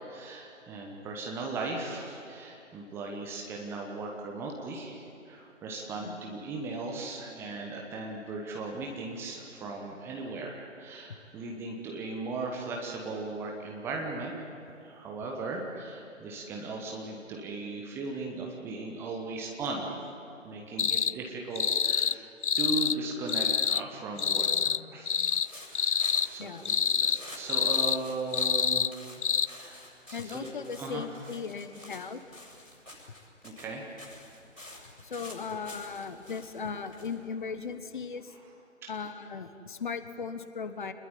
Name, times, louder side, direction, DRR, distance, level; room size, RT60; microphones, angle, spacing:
voice 1, 0.1-14.3 14.8-19.9 20.4-22.3 22.6-24.5 24.9-25.3 25.6-28.9 29.4-29.9 30.3-30.5 30.8-31.0 32.9-33.0 33.4-33.9 38.8-38.9, right 3 dB, 5° right, -1 dB, 1.2 m, -37 dB
sound 1, 20.8-21.1 21.6-22.2 22.4-23.0 23.3-23.8 24.2-24.8 25.1-25.5 25.7-26.3 26.7-27.2 27.5-28.0 28.3-28.9 29.2-29.5, left 7 dB, 60° left, 0.5 m, -27 dB
sound 2, 25.3-38.1, left 1 dB, 80° left, 7.4 m, -50 dB
voice 2, 26.4-26.7 30.1-32.2 35.0-38.4 38.9-40.9, left 5 dB, 40° left, 10 dB, 1.4 m, -37 dB
27.0 x 21.0 x 10.0 m, 2.7 s
figure-of-eight pair, 145°, 39 cm